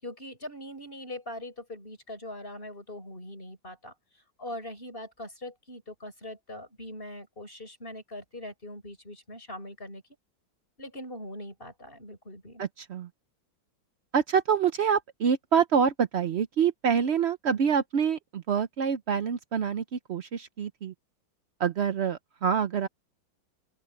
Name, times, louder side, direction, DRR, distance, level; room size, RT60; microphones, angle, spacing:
voice 1, 0.0-10.0 10.8-12.6, left 1 dB, 25° left, 7.4 m, -42 dB
voice 2, 12.6-13.1 14.1-20.9 21.6-22.9, right 7 dB, 70° right, 0.6 m, -26 dB
open air
omnidirectional pair, 2.0 m